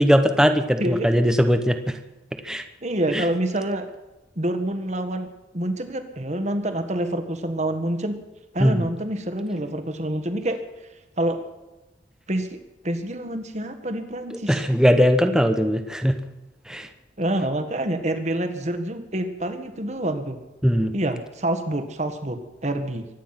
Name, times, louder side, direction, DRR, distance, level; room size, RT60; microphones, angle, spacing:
voice 1, 0.0-2.0 2.4-2.6 3.1-3.3 8.6-8.9 14.5-16.2 16.7-16.9 20.6-20.9, equal, 5° right, 7 dB, 1.0 m, -19 dB
voice 2, 0.8-1.1 2.8-3.9 4.3-8.2 8.5-10.6 11.2-11.4 12.3-14.6 17.2-20.4 20.9-23.1, right 1 dB, 40° right, 8 dB, 1.7 m, -27 dB
24.5 x 9.9 x 5.9 m, 1.0 s
head